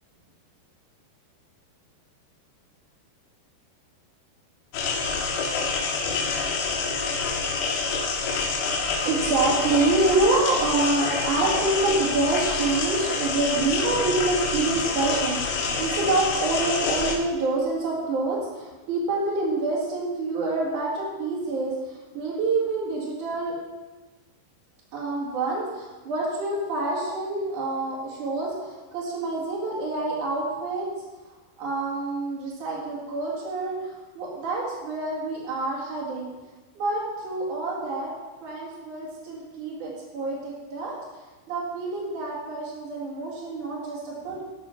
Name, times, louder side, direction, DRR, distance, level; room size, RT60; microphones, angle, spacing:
sound 1, 4.7-17.2, left 4 dB, 70° left, 2.9 m, -27 dB
voice 1, 9.0-23.5 24.9-30.9 31.6-36.3 36.8-38.1 38.4-44.4, right 3 dB, 55° right, -6 dB, 3.2 m, -27 dB
12.0 x 7.2 x 5.7 m, 1.2 s
omnidirectional pair, 4.8 m